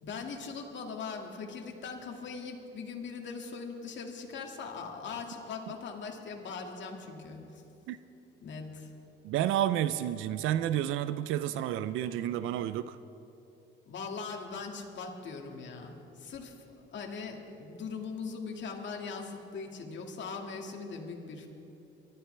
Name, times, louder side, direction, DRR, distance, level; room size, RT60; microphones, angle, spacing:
voice 1, 0.0-7.6 8.4-8.9 13.9-21.5, left 5 dB, 65° left, 2 dB, 2.1 m, -40 dB
voice 2, 9.2-13.0, right 11 dB, 90° right, 13 dB, 0.4 m, -30 dB
23.5 x 13.0 x 3.3 m, 2.9 s
cardioid pair, 90°, 20 cm